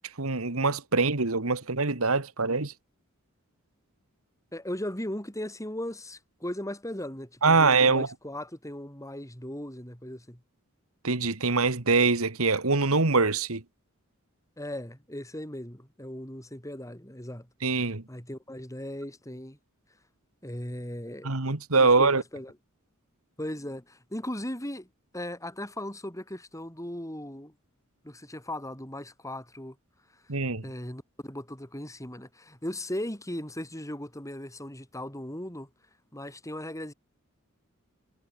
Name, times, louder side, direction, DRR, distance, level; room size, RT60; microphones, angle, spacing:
voice 1, 0.2-2.7 7.4-8.1 11.0-13.6 17.6-18.0 21.2-22.2 30.3-30.6, right 4 dB, 75° right, 1.9 m, -24 dB
voice 2, 4.5-10.4 14.6-17.5 18.1-19.6 20.4-21.3 21.8-22.5 23.4-24.9 25.1-27.5 28.0-29.8 30.6-35.7 36.1-36.9, left 1 dB, 15° left, 6.5 m, -37 dB
head